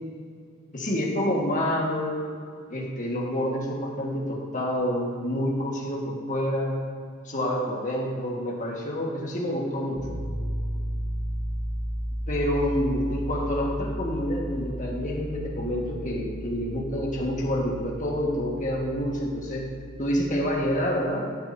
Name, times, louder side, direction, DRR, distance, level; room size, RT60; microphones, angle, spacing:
voice 1, 0.7-2.3 2.7-6.8 7.2-10.2 12.3-19.6 20.0-21.2, equal, 35° left, -2 dB, 1.5 m, -28 dB
Piano, 10.0-20.8, equal, 10° left, 1.9 m, -34 dB
14.0 x 8.4 x 2.7 m, 2.2 s
head